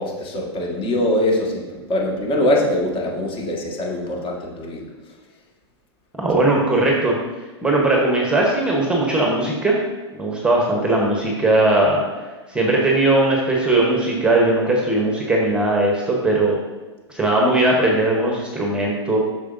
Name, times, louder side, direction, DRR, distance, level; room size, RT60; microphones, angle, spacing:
voice 1, 0.0-4.9, left 1 dB, 35° left, -1 dB, 1.8 m, -22 dB
voice 2, 6.2-7.2 7.6-9.8 10.1-12.0 12.5-16.6 17.1-19.2, right 2 dB, 5° right, -1 dB, 1.1 m, -19 dB
8.2 x 6.2 x 2.7 m, 1.2 s
hypercardioid pair, 115°, 15 cm